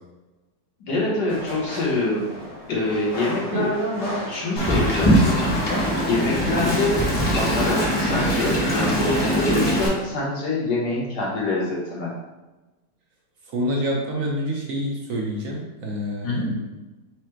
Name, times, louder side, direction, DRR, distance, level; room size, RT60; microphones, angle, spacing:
voice 1, 0.8-2.3 2.7-5.5 6.1-12.1 16.2-16.5, left 2 dB, 70° left, -4 dB, 1.7 m, -25 dB
sound 1, 1.3-9.4 9.7-10.0, left 1 dB, 90° left, 2.2 m, -37 dB
Wind, 4.6-9.9, equal, 30° left, 0.4 m, -21 dB
voice 2, 6.4-6.7 13.5-16.7, equal, 60° right, -2 dB, 1.1 m, -27 dB
4.9 x 2.2 x 4.4 m, 1.1 s
omnidirectional pair, 1.9 m